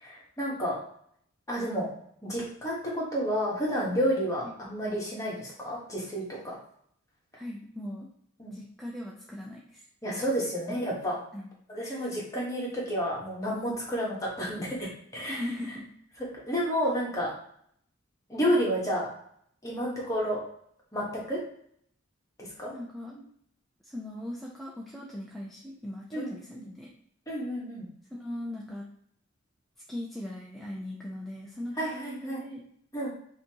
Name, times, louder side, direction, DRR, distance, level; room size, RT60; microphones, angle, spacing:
voice 1, 0.0-0.8 1.5-1.9 2.2-6.5 8.4-8.6 10.0-11.2 11.7-15.4 16.5-17.3 18.3-19.1 19.6-20.4 20.9-21.4 22.4-22.7 26.1-26.7 27.3-27.8 31.8-32.4 32.9-33.1, equal, 15° left, -5 dB, 1.4 m, -30 dB
voice 2, 7.3-8.1 8.5-9.8 10.1-10.2 10.9-11.0 11.3-11.5 11.8-12.1 15.3-15.9 22.7-23.3 23.8-26.9 28.1-28.9 29.9-32.6, left 1 dB, ahead, -4 dB, 0.5 m, -39 dB
5.5 x 2.9 x 2.9 m, 0.65 s
head